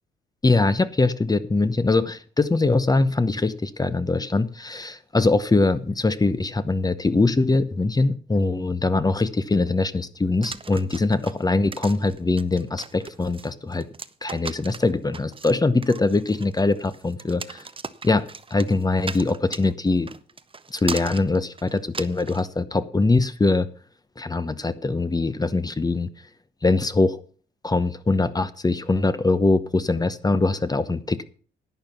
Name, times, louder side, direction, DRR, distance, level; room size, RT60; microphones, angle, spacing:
voice 1, 0.4-13.9 14.2-17.7 18.0-20.1 20.7-23.7 24.2-26.1 26.6-27.2 27.6-31.2, left 3 dB, 20° left, 1.0 m, -22 dB
sound 1, 10.4-22.5, right 5 dB, 25° right, 0.9 m, -38 dB
11.5 x 8.9 x 5.8 m
cardioid pair, 90°, 20 cm